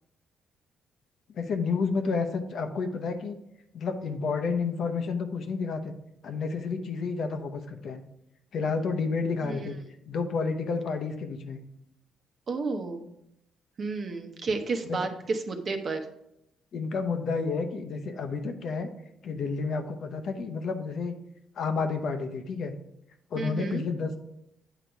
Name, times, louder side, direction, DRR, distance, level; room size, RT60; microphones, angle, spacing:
voice 1, 1.3-3.4 3.7-5.9 6.2-8.0 8.5-9.8 10.1-11.6 14.9-15.0 16.7-18.9 19.2-21.1 21.6-22.7 23.3-24.2, left 4 dB, 65° left, 6 dB, 0.8 m, -30 dB
voice 2, 12.5-13.1 13.8-16.1 23.4-23.8, right 3 dB, 45° right, 5 dB, 0.9 m, -31 dB
8.2 x 3.9 x 4.6 m, 0.79 s
cardioid pair, 90°, 0 cm